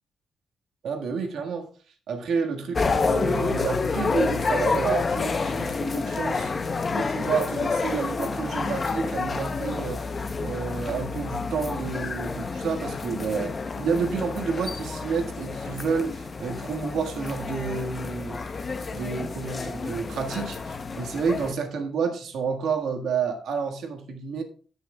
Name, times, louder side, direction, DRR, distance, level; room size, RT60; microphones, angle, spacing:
voice 1, 0.8-1.7 2.1-6.5 6.9-10.0 10.4-18.4 18.9-24.4, right 5 dB, 85° right, 3 dB, 1.6 m, -30 dB
sound 1, 2.7-21.5, left 4 dB, 35° left, 0.7 m, -29 dB
16.5 x 6.2 x 2.3 m, 0.40 s
cardioid pair, 100°, 0 cm